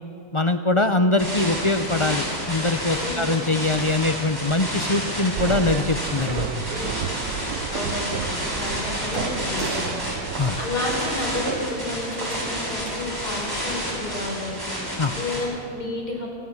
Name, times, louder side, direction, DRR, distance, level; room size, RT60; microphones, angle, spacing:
voice 1, 0.3-6.7 10.4-10.6 15.0-15.1, left 2 dB, 40° left, 9 dB, 0.4 m, -23 dB
sound 1, 1.2-15.4, equal, 15° right, 7.9 m, -30 dB
sound 2, 5.4-11.7, right 9 dB, 75° right, 1.2 m, -33 dB
sound 3, 7.4-13.3, right 6 dB, 50° right, 1.1 m, -37 dB
voice 2, 7.7-8.3 8.5-9.9 10.6-14.6 15.2-16.3, left 2 dB, 90° left, 0 dB, 5.1 m, -31 dB
28.0 x 16.0 x 7.3 m, 2.5 s
omnidirectional pair, 1.6 m